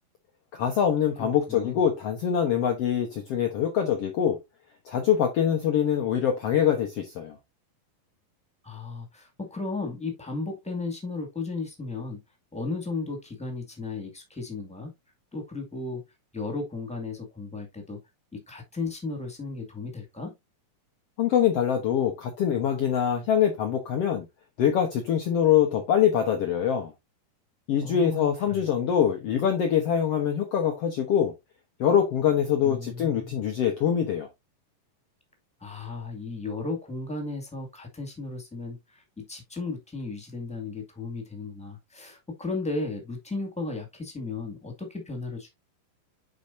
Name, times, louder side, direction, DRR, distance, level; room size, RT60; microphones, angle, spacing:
voice 1, 0.5-4.4 4.8-7.3 21.2-24.2 24.6-26.9 27.7-31.3 31.8-34.3, left 9 dB, 85° left, 1.3 m, -24 dB
voice 2, 1.2-1.8 8.6-12.2 12.5-14.9 15.3-16.0 16.3-18.0 18.3-20.3 27.8-28.7 32.6-33.4 35.6-45.5, left 3 dB, 5° left, 1.0 m, -35 dB
10.0 x 4.4 x 2.6 m
omnidirectional pair, 4.2 m